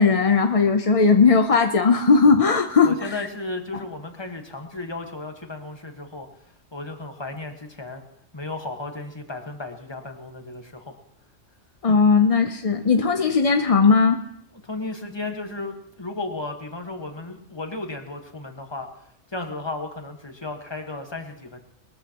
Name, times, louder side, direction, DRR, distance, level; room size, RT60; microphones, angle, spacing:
voice 1, 0.0-3.1 11.8-14.2, left 5 dB, 40° left, 6 dB, 0.5 m, -18 dB
voice 2, 2.8-6.3 6.7-8.0 8.3-11.0 14.5-18.9 19.3-21.6, left 2 dB, 20° left, 4 dB, 1.4 m, -34 dB
21.0 x 14.0 x 2.9 m, 0.76 s
omnidirectional pair, 1.3 m